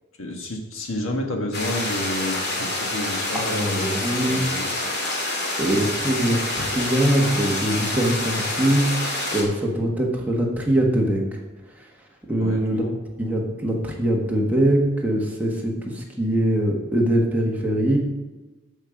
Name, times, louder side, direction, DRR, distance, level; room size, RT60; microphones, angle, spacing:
voice 1, 0.2-4.7 12.4-13.0, left 1 dB, 80° left, 3 dB, 1.6 m, -30 dB
sound 1, 1.5-9.4, left 2 dB, 55° left, 2.6 m, -27 dB
voice 2, 3.3-4.5 5.6-8.9 9.3-11.4 12.2-12.8 13.2-18.0, right 1 dB, 10° right, -2 dB, 1.5 m, -22 dB
13.5 x 5.6 x 5.1 m, 1.2 s
head